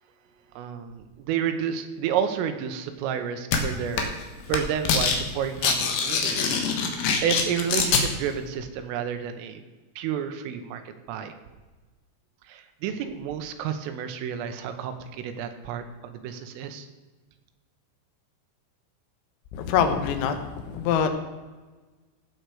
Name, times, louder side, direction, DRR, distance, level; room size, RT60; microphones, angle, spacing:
voice 1, 0.6-4.2 4.5-9.6 10.0-11.3 12.5-16.9, right 8 dB, 80° right, 7 dB, 3.6 m, -31 dB
sound 1, 3.5-3.6 4.0-4.2 4.5-5.2 5.4-8.0, left 5 dB, 65° left, 2.4 m, -24 dB
voice 2, 19.5-21.1, left 7 dB, 90° left, 7 dB, 3.9 m, -24 dB
16.0 x 7.9 x 4.8 m, 1.3 s
omnidirectional pair, 5.9 m